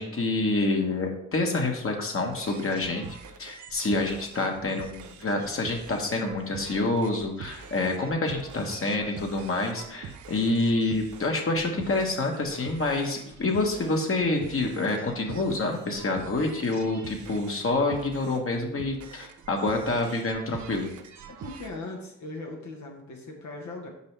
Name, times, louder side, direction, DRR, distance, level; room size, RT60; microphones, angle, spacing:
voice 1, 0.0-20.9, left 2 dB, 45° left, 2 dB, 1.3 m, -27 dB
sound 1, 2.3-21.7, right 6 dB, 75° right, 0.6 m, -45 dB
voice 2, 21.3-23.9, left 2 dB, 75° left, 0 dB, 1.2 m, -39 dB
5.4 x 5.3 x 3.3 m, 0.78 s
supercardioid pair, 45°, 30 cm